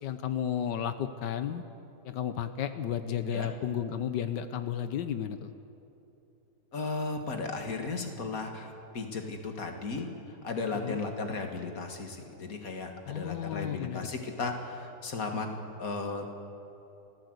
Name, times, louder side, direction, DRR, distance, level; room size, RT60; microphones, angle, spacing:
voice 1, 0.0-1.6 2.0-5.5 10.7-11.0 13.0-14.1, left 9 dB, 80° left, 10 dB, 1.5 m, -33 dB
voice 2, 6.7-15.5 15.8-16.2, left 3 dB, 55° left, 4 dB, 2.3 m, -35 dB
26.0 x 15.5 x 8.0 m, 2.9 s
omnidirectional pair, 1.9 m